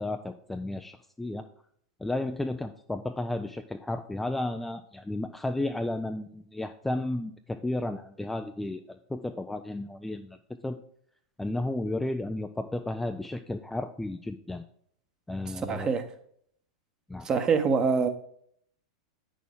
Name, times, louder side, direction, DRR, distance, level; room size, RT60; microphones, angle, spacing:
voice 1, 0.0-1.5 2.0-10.4 10.6-10.8 11.4-14.6 15.3-15.9 17.1-17.3, left 2 dB, 5° left, 0.4 m, -33 dB
voice 2, 15.7-16.1 17.2-18.1, right 5 dB, 25° right, 1.1 m, -24 dB
9.1 x 6.4 x 3.6 m
figure-of-eight pair, 95°, 3 cm